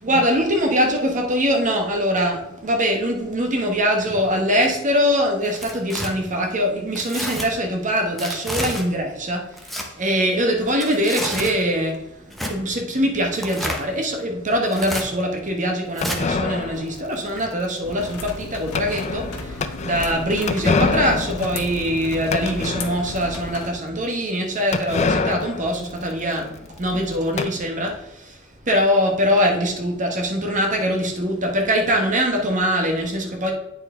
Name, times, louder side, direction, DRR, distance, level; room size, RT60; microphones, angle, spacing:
voice 1, 0.0-26.5 26.8-28.4 28.7-33.5, equal, 35° right, 2 dB, 1.2 m, -23 dB
Tearing, 5.4-6.1 7.0-7.5 8.2-8.8 9.5-9.9 10.7-11.6 12.3-12.5 13.3-13.8 14.7-15.0 16.0-16.2, equal, ahead, 0.8 m, -29 dB
sound 1, 16.0-23.3 23.7-23.8 23.9-24.0 24.7-27.5, left 4 dB, 30° left, 0.4 m, -27 dB
sound 2, 17.8-23.7, left 2 dB, 85° left, 1.0 m, -35 dB
8.7 x 4.7 x 3.7 m, 0.91 s
head